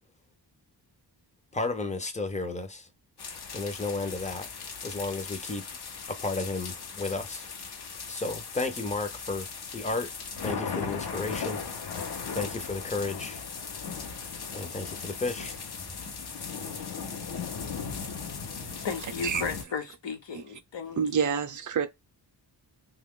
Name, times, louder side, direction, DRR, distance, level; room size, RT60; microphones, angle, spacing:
voice 1, 1.5-2.9 3.5-4.5 4.8-5.6 6.1-7.5 8.1-9.5 9.7-10.1 10.4-11.6 12.3-13.4 14.5-15.6, left 3 dB, 15° left, 0.5 m, -33 dB
sound 1, 3.2-19.6, left 5 dB, 65° left, 0.7 m, -37 dB
voice 2, 18.8-21.0, left 6 dB, 90° left, 1.0 m, -34 dB
voice 3, 21.0-21.9, right 6 dB, 45° right, 0.5 m, -28 dB
3.0 x 2.3 x 3.5 m
wide cardioid pair, 155°, 42 cm